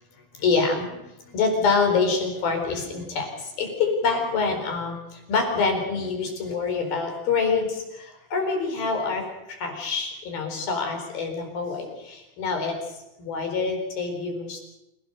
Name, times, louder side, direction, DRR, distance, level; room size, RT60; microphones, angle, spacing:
voice 1, 0.3-12.8 13.2-14.7, left 4 dB, 85° left, 3 dB, 6.2 m, -26 dB
27.5 x 17.5 x 6.7 m, 0.93 s
omnidirectional pair, 4.1 m